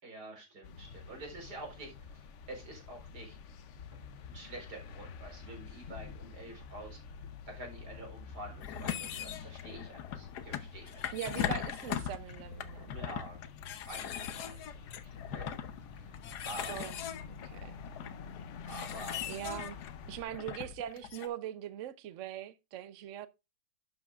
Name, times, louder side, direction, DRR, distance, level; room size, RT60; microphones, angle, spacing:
voice 1, 0.0-3.4 4.3-7.2 7.5-11.2 12.8-15.5 15.9-16.1 16.4-16.8 18.7-19.2, right 1 dB, 50° right, 4.8 m, -48 dB
sound 1, 0.6-20.2, left 5 dB, 75° left, 0.6 m, -48 dB
sound 2, 8.6-21.3, left 9 dB, 60° left, 1.3 m, -40 dB
voice 2, 11.1-12.9 16.7-17.0 17.3-17.8 19.3-19.8 20.1-23.3, right 11 dB, 75° right, 0.6 m, -41 dB
11.5 x 9.5 x 2.4 m
omnidirectional pair, 2.2 m